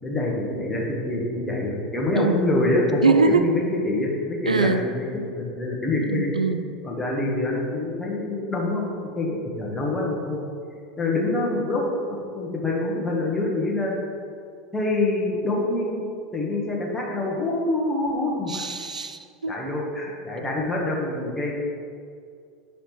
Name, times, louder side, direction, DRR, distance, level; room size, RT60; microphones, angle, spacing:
voice 1, 0.0-5.1 5.4-6.3 6.8-9.3 9.6-10.4 11.0-13.9 14.7-16.1 16.3-18.6 19.5-21.6, left 2 dB, 10° left, -3 dB, 1.5 m, -26 dB
voice 2, 2.2-2.5 3.0-3.5 4.5-4.8 6.1-6.6 18.5-19.6, right 4 dB, 85° right, 9 dB, 0.3 m, -22 dB
6.2 x 5.1 x 4.6 m, 2.3 s
figure-of-eight pair, 80°, 4 cm